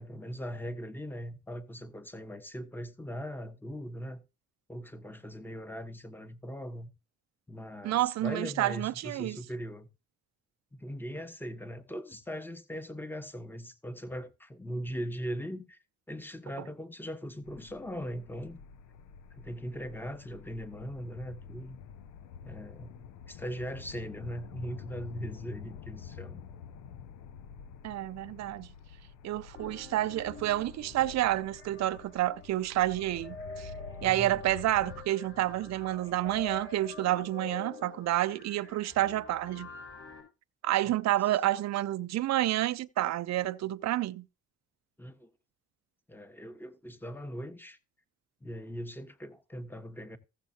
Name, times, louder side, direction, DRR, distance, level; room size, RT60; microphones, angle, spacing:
voice 1, 0.0-4.2 4.7-6.9 7.5-9.9 10.7-15.8 16.1-18.6 19.4-21.8 22.4-26.4 34.0-34.4 45.0-45.3 46.1-47.8 48.4-50.2, equal, 5° left, 1.3 m, -40 dB
voice 2, 7.8-9.4 27.8-28.7 29.2-33.7 34.0-39.7 40.6-44.2, right 14 dB, 60° right, 0.6 m, -29 dB
sound 1, 17.4-35.0, left 7 dB, 85° left, 0.8 m, -48 dB
sound 2, 29.5-40.2, left 3 dB, 45° left, 5.1 m, -47 dB
15.0 x 7.4 x 2.8 m
cardioid pair, 90°, 30 cm